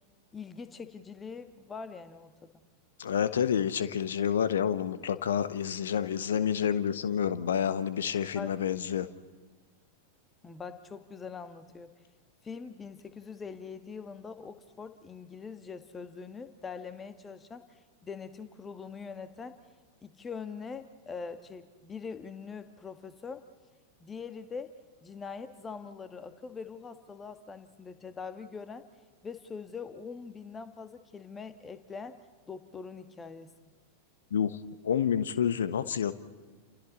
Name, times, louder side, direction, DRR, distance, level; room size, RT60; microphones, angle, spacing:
voice 1, 0.3-2.5 8.3-8.5 10.4-11.9 12.4-17.6 18.0-19.6 20.0-23.5 24.0-24.7 25.0-28.8 29.2-33.5, left 5 dB, 20° left, 11 dB, 1.5 m, -43 dB
voice 2, 3.0-9.1 34.3-34.6 34.8-36.1, left 8 dB, 65° left, 14 dB, 1.2 m, -28 dB
30.0 x 28.5 x 4.2 m, 1.4 s
figure-of-eight pair, 90°, 0 cm